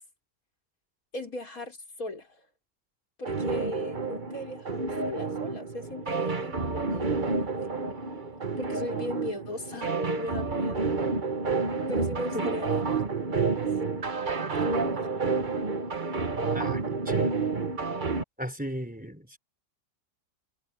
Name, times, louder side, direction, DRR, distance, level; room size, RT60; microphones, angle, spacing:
voice 1, 1.1-2.3 3.2-7.1 8.6-10.9 11.9-12.8 13.4-13.7 14.6-15.1, left 1 dB, 55° left, 5.2 m, -38 dB
sound 1, 3.2-18.2, right 4 dB, 30° right, 1.2 m, -29 dB
voice 2, 16.5-17.4 18.4-19.4, equal, 5° right, 4.2 m, -36 dB
omnidirectional pair, 1.8 m